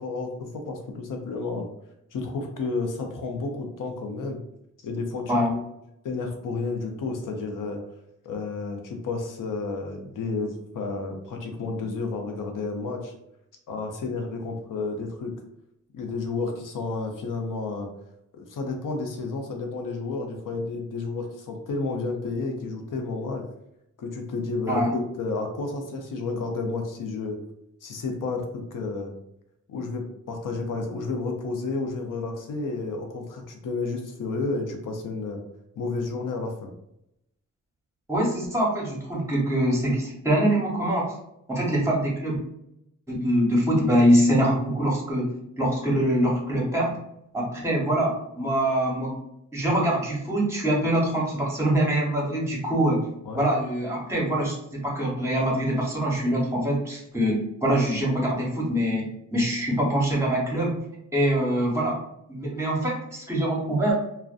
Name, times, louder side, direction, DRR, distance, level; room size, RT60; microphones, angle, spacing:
voice 1, 0.0-1.7 2.1-4.4 4.8-5.6 6.0-7.8 8.2-13.1 13.7-15.3 15.9-17.9 18.3-23.5 24.0-27.4 27.8-29.1 29.7-35.4 35.8-36.7 53.2-53.5, left 3 dB, 80° left, 3 dB, 0.6 m, -31 dB
voice 2, 24.7-25.0 38.1-41.1 41.5-42.4 43.1-45.3 45.6-47.0 47.3-49.2 49.5-53.0 53.3-59.0 59.3-60.8 61.1-62.0 62.3-64.0, right 1 dB, 10° right, -3 dB, 0.9 m, -24 dB
2.4 x 2.1 x 2.4 m, 0.79 s
wide cardioid pair, 105°, 32 cm